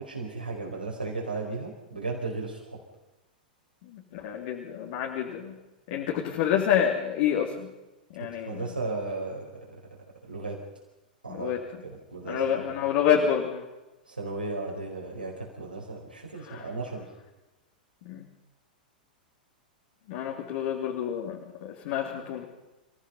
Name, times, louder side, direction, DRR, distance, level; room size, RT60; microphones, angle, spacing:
voice 1, 0.0-2.8 8.2-9.8 10.2-10.6 11.2-12.7 14.0-17.1, right 3 dB, 85° right, -2 dB, 4.8 m, -35 dB
voice 2, 3.9-5.6 5.9-7.7 8.1-8.6 11.3-11.6 12.3-13.6 16.4-16.7 18.0-18.3 20.1-22.4, left 9 dB, 50° left, 0 dB, 3.2 m, -28 dB
28.5 x 17.0 x 5.6 m, 1.0 s
figure-of-eight pair, 100°, 5 cm